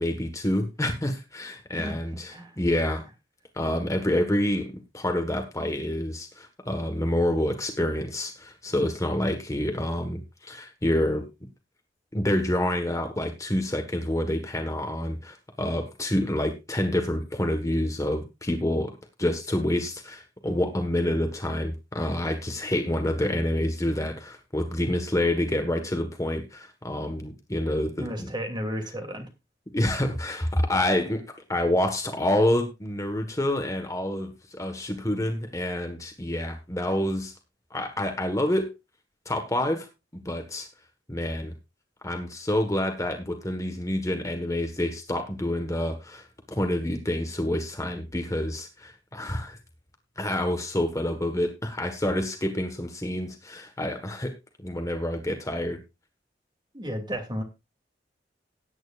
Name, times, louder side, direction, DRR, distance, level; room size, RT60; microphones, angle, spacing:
voice 1, 0.0-3.0 3.5-11.2 12.1-18.9 19.2-28.3 29.7-31.2 31.5-37.3 37.7-38.7 39.2-39.9 40.1-40.7 41.1-41.5 42.0-49.6 50.2-54.3 54.6-55.8, left 1 dB, 20° left, 5 dB, 1.5 m, -27 dB
voice 2, 1.8-2.6 28.0-29.3 56.7-57.4, equal, 25° right, 4 dB, 2.8 m, -33 dB
18.0 x 9.2 x 2.5 m, 0.25 s
head